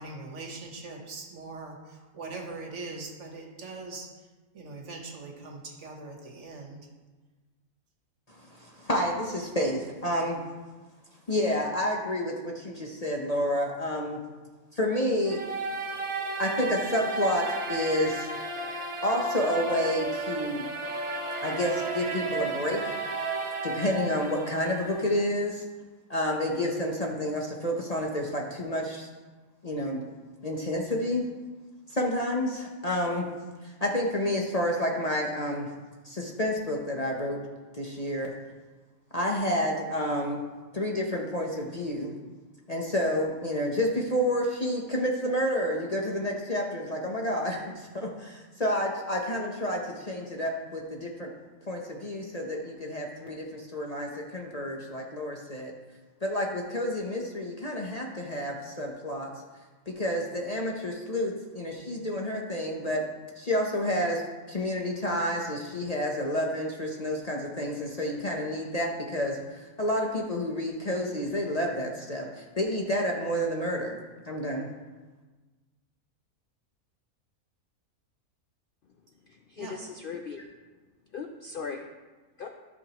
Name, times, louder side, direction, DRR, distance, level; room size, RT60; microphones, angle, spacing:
voice 1, 0.0-4.3 4.5-6.9 79.6-79.8, right 3 dB, 55° right, 1 dB, 1.4 m, -41 dB
voice 2, 8.4-10.4 11.3-14.2 14.7-15.4 16.4-18.3 19.0-20.6 21.4-22.9 23.6-25.6 26.1-29.1 29.6-30.0 30.4-31.3 31.9-33.3 33.6-35.7 36.0-37.4 37.7-38.3 39.1-40.4 40.7-42.1 42.7-51.3 51.7-55.7 56.2-59.3 59.9-63.0 63.4-64.2 64.5-74.0 74.3-74.7, left 1 dB, 35° left, -1 dB, 0.7 m, -29 dB
sound 1, 15.3-25.2, right 3 dB, 35° right, 0.5 m, -33 dB
voice 3, 79.3-80.5 81.1-81.8 82.4-82.5, left 5 dB, 80° left, 4 dB, 0.4 m, -38 dB
13.0 x 6.3 x 3.0 m, 1.3 s
omnidirectional pair, 1.5 m